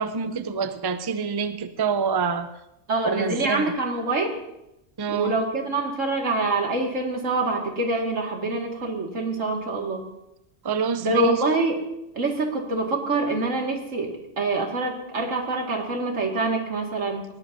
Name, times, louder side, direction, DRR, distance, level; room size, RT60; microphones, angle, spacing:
voice 1, 0.0-2.5 3.0-3.7 5.0-5.3 10.6-11.4, right 5 dB, 25° right, 10 dB, 0.5 m, -26 dB
voice 2, 2.9-4.4 5.1-10.0 11.0-11.8 12.1-17.3, right 2 dB, 90° right, 1 dB, 2.5 m, -25 dB
20.5 x 17.5 x 2.7 m, 0.87 s
omnidirectional pair, 1.3 m